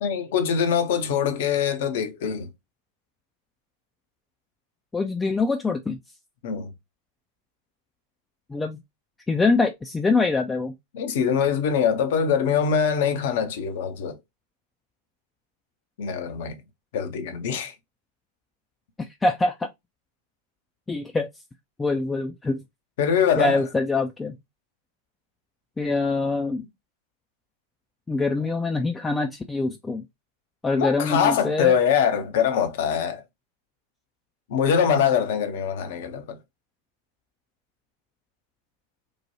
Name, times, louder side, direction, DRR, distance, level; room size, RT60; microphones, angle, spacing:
voice 1, 0.0-2.5 6.4-6.7 10.9-14.2 16.0-16.6 16.9-17.7 23.0-23.6 30.8-33.2 34.5-36.4, left 7 dB, 55° left, 0.6 m, -23 dB
voice 2, 4.9-6.0 8.5-8.8 9.3-10.7 19.0-19.7 20.9-21.3 21.8-22.6 23.4-24.3 25.8-26.6 28.1-30.0 30.6-31.7, left 3 dB, 10° left, 0.3 m, -24 dB
3.1 x 2.1 x 2.7 m
figure-of-eight pair, 90°, 0 cm